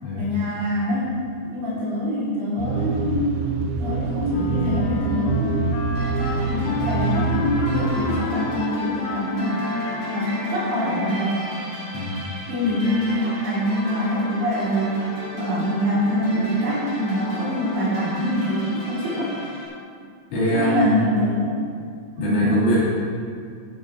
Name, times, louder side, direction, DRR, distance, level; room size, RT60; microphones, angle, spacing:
voice 1, 0.2-1.1 1.4-3.5 3.8-5.7 6.3-9.7 10.1-11.4 12.5-15.1 15.3-19.3 20.5-21.6 22.2-22.5, equal, 65° right, -8 dB, 5.0 m, -24 dB
sound 1, 2.6-8.0, right 4 dB, 85° right, 2.2 m, -25 dB
Wind instrument woodwind instrument, 4.3-11.8, left 5 dB, 90° left, 3.4 m, -31 dB
sound 2, 5.9-19.7, equal, 35° right, 2.2 m, -36 dB
voice 2, 20.3-21.0 22.2-22.8, left 1 dB, 60° left, -8 dB, 4.6 m, -22 dB
15.0 x 6.5 x 4.5 m, 2.2 s
omnidirectional pair, 5.5 m